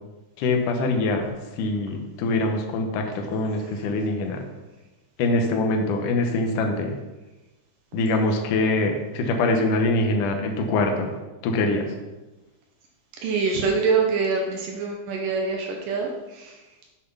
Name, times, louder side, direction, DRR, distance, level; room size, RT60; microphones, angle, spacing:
voice 1, 0.4-1.3 1.6-4.4 5.2-6.9 7.9-11.1 11.4-11.9, left 2 dB, 70° left, 3 dB, 2.5 m, -23 dB
voice 2, 13.2-16.1, right 4 dB, 75° right, 1 dB, 2.5 m, -24 dB
8.3 x 6.5 x 5.5 m, 1.1 s
omnidirectional pair, 4.1 m